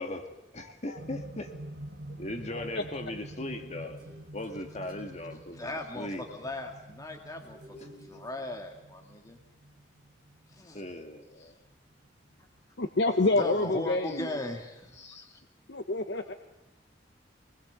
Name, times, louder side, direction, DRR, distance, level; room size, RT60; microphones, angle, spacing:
voice 1, 0.0-1.5 2.2-4.0 4.3-6.3 7.8-7.9 10.7-11.5 14.1-14.2 14.9-15.3, left 1 dB, 40° left, 5 dB, 2.2 m, -39 dB
voice 2, 0.6-1.0 2.5-2.8 12.8-14.5 15.7-16.3, left 2 dB, 70° left, 6 dB, 1.3 m, -28 dB
sound 1, 1.0-13.1 14.0-14.1, right 1 dB, 65° right, 1.5 m, -47 dB
sound 2, 4.0-5.9 7.4-8.9, equal, 25° right, 6.9 m, -55 dB
voice 3, 5.5-9.4 10.5-10.8 13.3-15.0 15.3-15.4, left 1 dB, 20° left, 3 dB, 2.2 m, -38 dB
25.0 x 21.0 x 8.3 m, 0.95 s
head